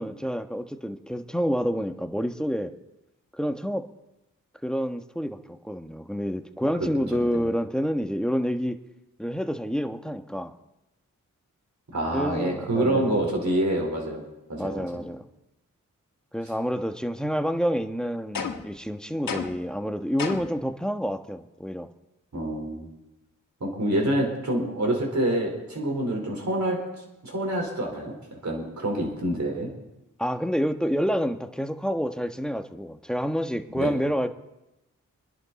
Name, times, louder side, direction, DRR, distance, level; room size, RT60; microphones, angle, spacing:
voice 1, 0.0-2.7 3.3-3.8 4.6-8.8 9.2-10.5 12.1-13.3 14.6-15.2 16.3-21.9 30.2-34.3, equal, ahead, 7 dB, 1.2 m, -28 dB
voice 2, 7.1-7.5 11.9-14.2 14.5-15.0 22.3-22.9 23.6-26.8 27.2-28.2 28.4-29.7 33.7-34.0, right 1 dB, 60° right, 1 dB, 4.3 m, -27 dB
sound 1, 18.3-18.8 19.3-19.7 20.2-20.6, left 6 dB, 85° left, 1.4 m, -32 dB
25.5 x 11.0 x 4.2 m, 0.96 s
cardioid pair, 45°, 32 cm